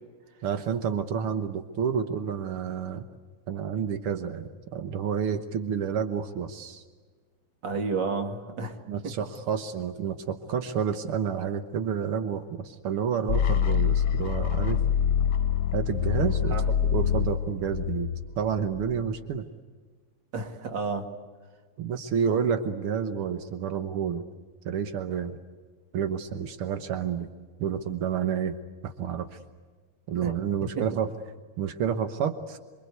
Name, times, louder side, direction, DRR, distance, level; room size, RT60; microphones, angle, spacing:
voice 1, 0.4-3.1 3.5-6.8 8.9-14.8 15.7-16.6 16.8-19.5 21.8-24.2 24.7-25.4 25.9-27.3 27.6-28.6 28.8-29.4 30.1-31.1 31.6-32.6, right 7 dB, 85° right, 7 dB, 2.1 m, -29 dB
voice 2, 7.6-8.8 9.0-9.1 16.5-16.7 20.3-21.1 30.2-30.3 30.8-30.9, right 4 dB, 55° right, 4 dB, 2.9 m, -31 dB
sound 1, 13.3-19.2, left 8 dB, 55° left, 1.5 m, -26 dB
27.5 x 24.0 x 8.2 m, 1.4 s
omnidirectional pair, 2.3 m